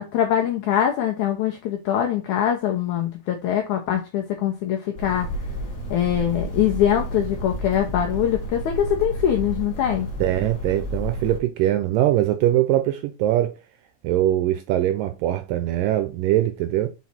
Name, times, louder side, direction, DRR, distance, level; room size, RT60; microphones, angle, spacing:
voice 1, 0.0-5.3 5.9-10.1, left 10 dB, 80° left, 1.8 m, -23 dB
sound 1, 5.0-11.4, equal, 40° left, 1.1 m, -31 dB
voice 2, 10.2-13.5 14.0-16.9, right 13 dB, 80° right, 2.0 m, -22 dB
6.2 x 4.2 x 4.2 m
omnidirectional pair, 4.4 m